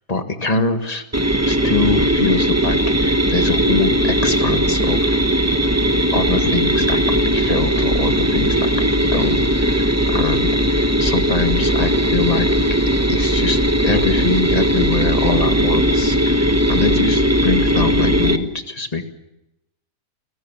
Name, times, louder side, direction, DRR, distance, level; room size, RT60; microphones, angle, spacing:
voice 1, 0.1-1.0 1.4-5.2 6.1-12.5 13.1-19.1, left 3 dB, 25° left, 7 dB, 1.7 m, -24 dB
sound 1, 1.1-18.4, equal, 10° right, 0.9 m, -18 dB
29.5 x 16.0 x 7.3 m, 0.93 s
omnidirectional pair, 1.8 m